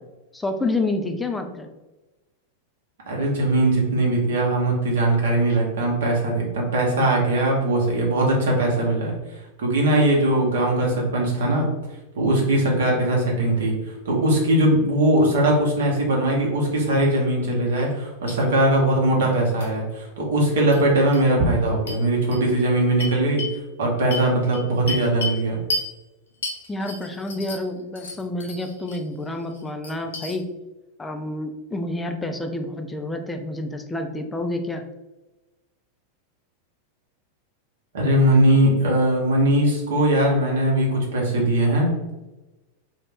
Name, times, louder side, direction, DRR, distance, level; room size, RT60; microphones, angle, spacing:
voice 1, 0.3-1.7 26.7-30.4 31.0-34.8, left 2 dB, 10° left, 5 dB, 0.3 m, -28 dB
voice 2, 3.1-9.1 9.6-11.7 12.2-13.7 14.0-25.6 37.9-41.9, right 1 dB, 60° right, -2 dB, 0.8 m, -20 dB
sound 1, 17.7-18.0 18.3-18.4 19.6-19.7 20.7-20.8 21.1-21.2 21.9-22.0 22.3-22.4 23.0-23.6 24.1-25.4 25.7-25.9 26.4-27.7 28.0-29.0 29.4-30.3, left 2 dB, 65° left, 0.6 m, -32 dB
2.4 x 2.1 x 3.5 m, 1.1 s
figure-of-eight pair, 90°, 0 cm